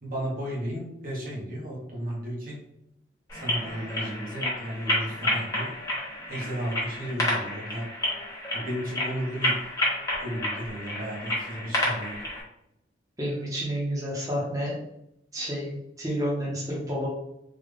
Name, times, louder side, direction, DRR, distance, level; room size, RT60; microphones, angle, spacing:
voice 1, 0.0-2.6 3.3-5.7 6.3-7.9 8.5-9.6 10.2-12.2, equal, 50° right, -3 dB, 1.0 m, -34 dB
sound 1, 3.3-12.4, left 1 dB, 20° left, 1.1 m, -30 dB
voice 2, 13.2-14.8 15.3-17.1, equal, 20° right, -5 dB, 0.9 m, -30 dB
3.8 x 2.4 x 3.3 m, 0.81 s
head